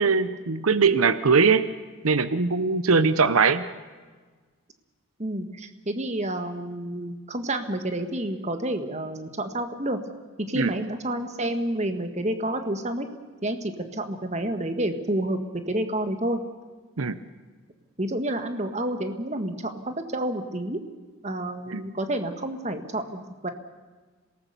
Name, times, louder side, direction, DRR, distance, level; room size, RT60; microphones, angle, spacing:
voice 1, 0.0-1.7 2.0-3.6 10.5-10.7 17.0-17.2 21.7-21.8, right 5 dB, 85° right, 13 dB, 0.9 m, -21 dB
voice 2, 5.2-10.0 10.4-13.1 13.4-15.4 15.7-16.4 18.0-20.8 21.2-23.5, right 1 dB, 30° right, 8 dB, 1.6 m, -29 dB
26.5 x 18.0 x 6.9 m, 1.4 s
head